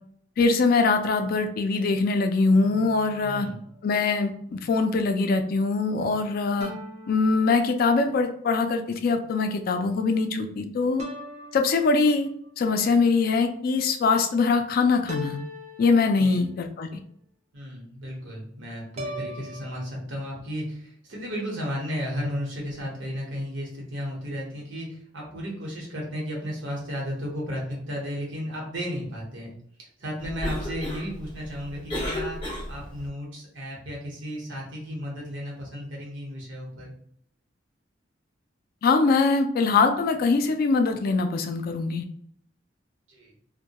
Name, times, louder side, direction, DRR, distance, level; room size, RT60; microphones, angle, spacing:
voice 1, 0.4-3.5 3.8-6.7 7.1-11.0 11.5-12.3 12.6-15.4 15.8-17.0 38.8-42.0, left 4 dB, 50° left, 6 dB, 0.3 m, -23 dB
sound 1, 2.5-4.2 6.6-8.3 11.0-12.5 15.1-16.7 19.0-19.8, equal, 40° right, 0.4 m, -41 dB
voice 2, 3.2-3.6 16.2-16.4 17.5-29.5 30.0-32.4 32.7-36.9 43.1-43.3, equal, 85° right, -2 dB, 0.9 m, -34 dB
Cough, 30.2-33.1, left 1 dB, 30° left, 0.7 m, -33 dB
2.2 x 2.1 x 2.8 m, 0.67 s
head